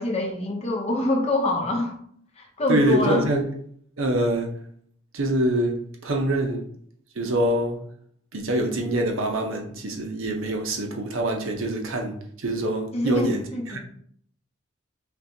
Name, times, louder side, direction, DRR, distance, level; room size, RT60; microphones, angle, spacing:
voice 1, 0.0-1.9 2.4-3.2 12.9-13.8, left 1 dB, 30° left, 0 dB, 0.7 m, -25 dB
voice 2, 2.7-3.4 4.0-4.5 5.1-6.7 7.2-7.8 8.3-13.8, right 1 dB, 75° right, 2 dB, 0.7 m, -25 dB
4.2 x 3.2 x 2.7 m, 0.64 s
head